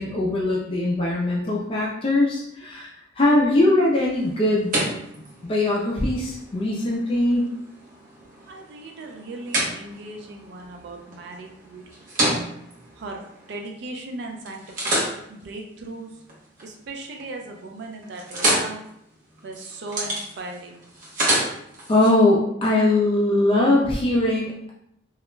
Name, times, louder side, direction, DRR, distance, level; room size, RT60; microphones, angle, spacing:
voice 1, 0.0-4.8 5.4-7.4 21.9-24.7, left 2 dB, 30° left, -4 dB, 0.3 m, -21 dB
sound 1, 4.0-14.0 14.5-16.7 17.1-17.5 17.8-22.1, right 1 dB, 45° right, 0.7 m, -30 dB
voice 2, 8.5-12.1 12.9-13.2 13.5-14.9 15.3-16.2 16.6-18.8 19.4-20.8, right 2 dB, 65° right, 2 dB, 0.4 m, -37 dB
2.3 x 2.0 x 3.0 m, 0.75 s
head